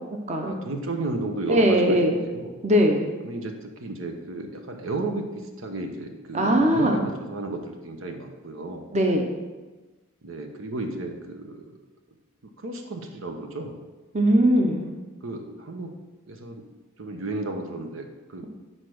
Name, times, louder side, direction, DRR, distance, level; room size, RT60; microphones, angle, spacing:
voice 1, 0.4-2.5 3.2-3.5 3.8-5.2 5.6-8.8 10.2-11.6 12.6-13.8 15.2-15.9 16.3-16.6 17.0-18.4, right 2 dB, 80° right, 5 dB, 0.9 m, -33 dB
voice 2, 1.5-2.1 2.6-3.1 6.3-7.0 8.9-9.3 14.1-14.9, equal, 35° right, 3 dB, 0.8 m, -20 dB
6.6 x 4.6 x 6.4 m, 1.2 s
head